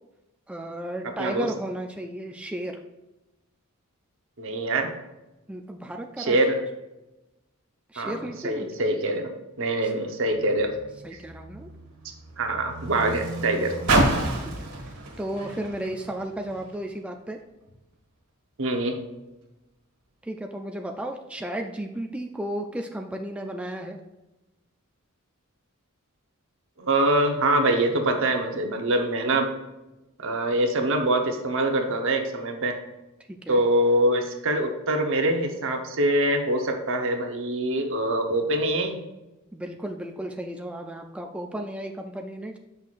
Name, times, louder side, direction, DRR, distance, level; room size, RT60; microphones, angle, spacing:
voice 1, 0.5-2.8 5.5-6.4 7.9-8.7 9.8-9.9 11.0-11.7 14.6-17.4 20.2-24.0 33.3-33.6 39.5-42.6, right 1 dB, 5° right, 3 dB, 0.3 m, -34 dB
voice 2, 4.4-4.9 6.2-6.6 8.0-8.2 8.4-9.3 9.6-10.7 12.4-13.7 18.6-19.0 26.8-29.5 30.2-32.8 33.5-39.0, right 1 dB, 65° right, 4 dB, 0.9 m, -24 dB
Car, 10.3-16.9 17.7-17.8, right 2 dB, 90° right, 1.5 m, -30 dB
7.9 x 5.6 x 2.5 m, 1.0 s
head